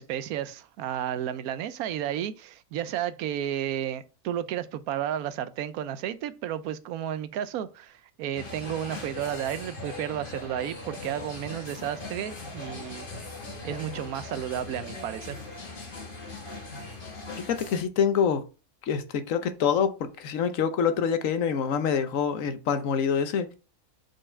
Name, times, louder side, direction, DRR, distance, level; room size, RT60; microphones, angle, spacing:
voice 1, 0.0-13.1 13.6-15.4, right 10 dB, 90° right, 1.1 m, -32 dB
sound 1, 8.3-17.8, left 3 dB, 40° left, 1.4 m, -40 dB
voice 2, 17.4-18.4 18.9-19.9 20.2-23.5, left 7 dB, 70° left, 1.1 m, -25 dB
4.8 x 4.5 x 4.3 m
omnidirectional pair, 1.5 m